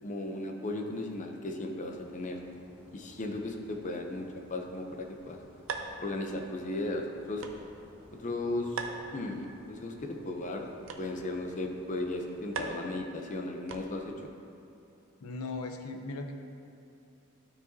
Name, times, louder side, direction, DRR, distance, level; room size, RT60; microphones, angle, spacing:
voice 1, 0.0-2.4 2.9-5.4 6.0-7.4 8.2-10.7 11.0-14.1, left 2 dB, 35° left, 3 dB, 0.6 m, -36 dB
sound 1, 1.9-12.7, equal, 10° right, 1.4 m, -57 dB
sound 2, 4.9-14.2, right 4 dB, 60° right, 0.5 m, -44 dB
voice 2, 15.2-16.3, left 3 dB, 90° left, 5 dB, 0.6 m, -38 dB
12.0 x 4.9 x 2.7 m, 2.8 s
head